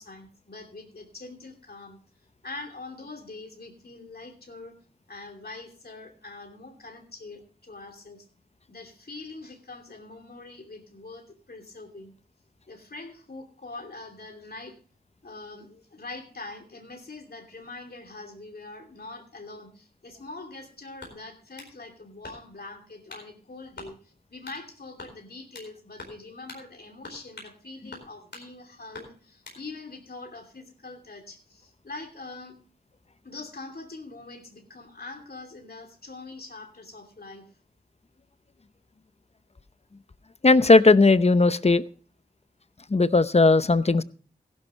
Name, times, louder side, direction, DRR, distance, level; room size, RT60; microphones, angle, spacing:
voice 1, 0.0-2.0 2.4-4.7 5.1-8.3 8.7-12.1 12.7-14.8 15.2-32.6 33.2-37.5, left 3 dB, 60° left, 4 dB, 2.8 m, -43 dB
sound 1, 21.0-21.7 22.2-22.6 23.1-23.3 23.8-23.9 24.4-24.6 25.0-25.7 26.0-26.2 26.5-26.6 27.0-27.6 27.9-28.5 28.9-29.6, left 2 dB, 80° left, 4.4 m, -44 dB
voice 2, 40.4-41.8 42.9-44.0, left 3 dB, 35° left, 14 dB, 0.7 m, -17 dB
15.5 x 12.0 x 3.1 m, 0.39 s
cardioid pair, 40°, 18 cm